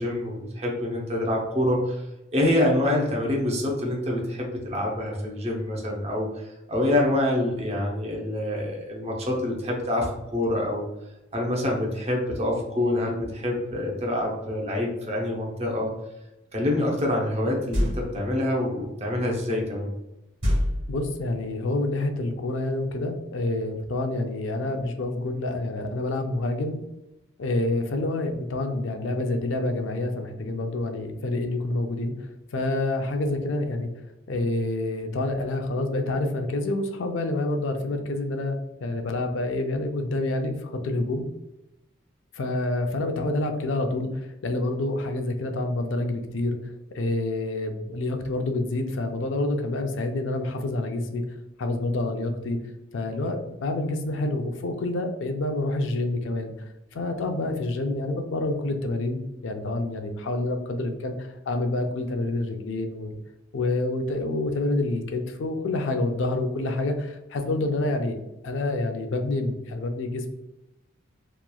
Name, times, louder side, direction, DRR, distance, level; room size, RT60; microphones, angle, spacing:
voice 1, 0.0-2.1 2.3-6.4 6.7-10.9 11.3-15.9 16.5-19.9, left 1 dB, 30° right, -1 dB, 0.6 m, -26 dB
sound 1, 17.7-18.4 20.4-21.4, equal, 70° right, 1.2 m, -26 dB
voice 2, 20.9-26.8 27.4-32.1 32.5-33.9 34.3-41.2 42.3-46.6 46.9-51.2 51.6-52.6 52.9-56.5 56.9-63.2 63.5-68.2 68.4-70.3, left 2 dB, 65° left, 5 dB, 0.4 m, -27 dB
2.9 x 2.3 x 2.3 m, 0.94 s
head